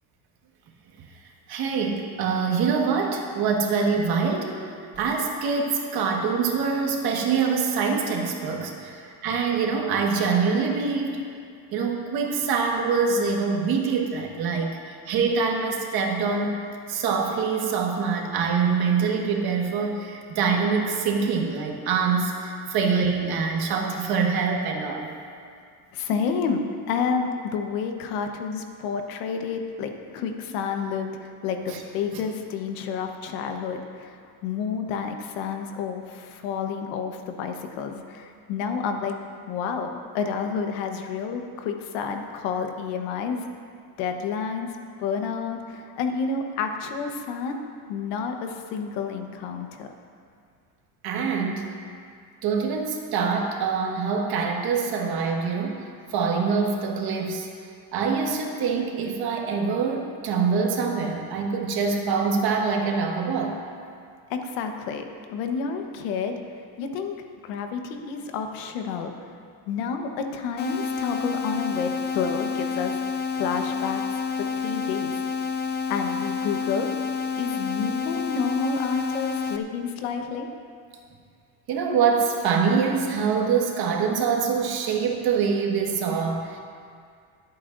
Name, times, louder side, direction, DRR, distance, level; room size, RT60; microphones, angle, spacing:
voice 1, 1.5-4.7 5.0-11.2 11.7-16.6 16.9-25.1 31.7-31.8 32.1-32.2 51.0-51.7 52.4-55.8 56.1-57.5 57.9-63.6 81.7-86.6, right 5 dB, 55° right, 1 dB, 1.7 m, -25 dB
voice 2, 25.9-39.1 39.5-43.4 44.0-44.7 45.0-47.6 47.9-49.9 64.3-65.0 65.3-66.4 66.8-67.1 67.4-69.1 69.7-73.0 73.4-74.0 74.6-75.2 75.9-76.9 77.4-80.5, left 6 dB, 75° left, 4 dB, 1.3 m, -30 dB
sound 1, 70.6-79.6, left 5 dB, 25° left, 0.4 m, -29 dB
25.5 x 8.5 x 2.6 m, 2.2 s
cardioid pair, 140°, 45 cm